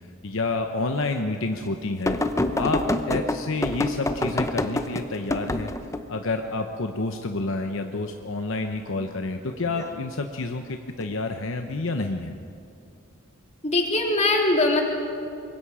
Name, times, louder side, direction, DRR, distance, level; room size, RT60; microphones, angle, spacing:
voice 1, 0.2-2.2 2.5-5.7 6.1-12.3, left 3 dB, 65° left, 5 dB, 0.9 m, -29 dB
sound 1, 2.1-6.0 9.5-9.9 11.0-11.1, left 1 dB, 15° left, 0.8 m, -26 dB
voice 2, 13.6-14.8, left 2 dB, 35° left, 1 dB, 2.9 m, -21 dB
25.0 x 22.0 x 5.0 m, 2.6 s
head